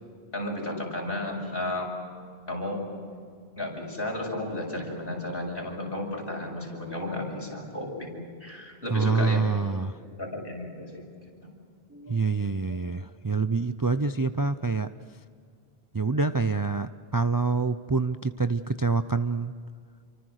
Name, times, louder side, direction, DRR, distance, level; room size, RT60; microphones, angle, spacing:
voice 1, 0.3-1.9 2.5-2.8 3.6-9.5 10.2-11.0 11.4-11.5 11.9-12.2 12.7-12.8, left 1 dB, 60° left, -1 dB, 7.1 m, -33 dB
voice 2, 8.9-10.0 12.1-14.9 15.9-19.5, right 4 dB, 25° right, 10 dB, 0.5 m, -26 dB
29.0 x 24.5 x 6.5 m, 2.2 s
omnidirectional pair, 1.1 m